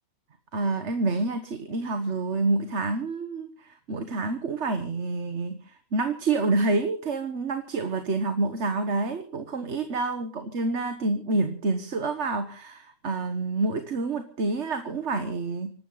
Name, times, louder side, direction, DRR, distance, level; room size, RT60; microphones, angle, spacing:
voice 1, 0.5-15.7, right 3 dB, 55° right, 8 dB, 1.6 m, -28 dB
26.5 x 12.5 x 4.0 m, 0.40 s
omnidirectional pair, 1.5 m